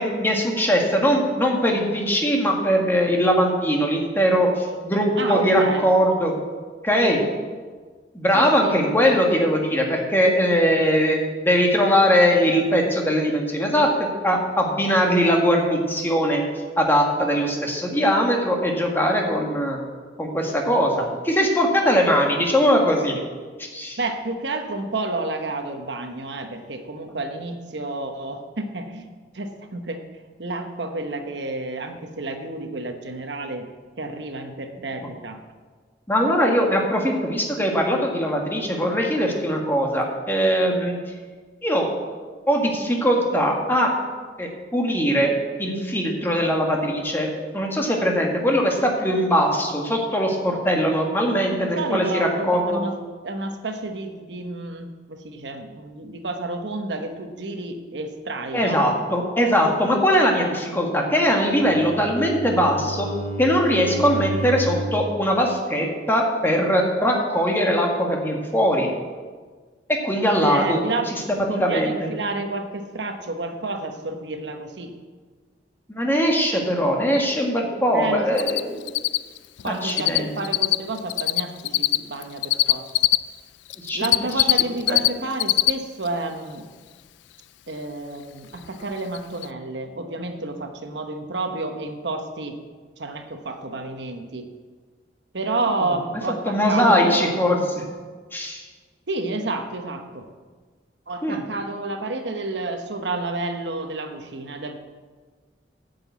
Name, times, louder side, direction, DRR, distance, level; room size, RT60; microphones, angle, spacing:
voice 1, 0.0-6.4 6.8-7.2 8.1-11.2 11.5-13.9 14.2-16.4 16.8-19.8 20.2-23.2 23.6-24.0 36.1-41.0 41.6-41.9 42.5-43.9 44.4-45.3 45.6-47.3 47.5-52.9 58.5-63.1 63.4-68.9 69.9-70.8 71.1-72.1 75.9-78.8 79.7-80.3 83.8-84.0 84.4-84.5 84.9-85.0 96.5-97.8 98.3-98.6 101.2-101.4, equal, 10° left, 0 dB, 1.7 m, -21 dB
voice 2, 5.2-5.9 8.3-8.8 24.0-30.0 30.4-33.7 34.0-35.4 51.5-52.9 53.2-58.8 70.4-71.1 71.5-74.9 77.9-78.5 79.6-82.9 83.9-86.7 87.7-92.6 93.0-94.5 95.3-97.3 99.1-100.3 101.1-104.8, right 2 dB, 70° right, 6 dB, 1.1 m, -30 dB
Bowed string instrument, 61.4-65.1, right 1 dB, 50° left, 1.4 m, -31 dB
Cricket, 78.4-78.6 78.9-80.2 80.4-83.2 83.7-85.1 85.3-85.7 86.1-86.2 88.7-88.8 89.1-89.2 89.4-89.5, left 18 dB, 80° left, 0.3 m, -19 dB
9.6 x 6.9 x 8.1 m, 1.5 s
head